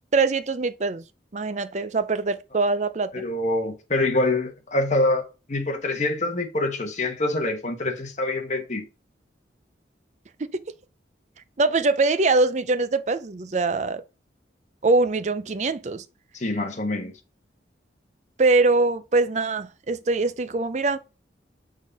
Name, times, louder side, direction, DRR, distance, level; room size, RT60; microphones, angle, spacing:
voice 1, 0.1-1.0 1.3-3.2 10.4-10.7 11.6-14.0 14.8-16.0 18.4-21.0, right 3 dB, 40° right, 0.5 m, -23 dB
voice 2, 3.1-8.8 16.3-17.1, left 2 dB, 40° left, 1.2 m, -25 dB
6.4 x 3.7 x 4.0 m
head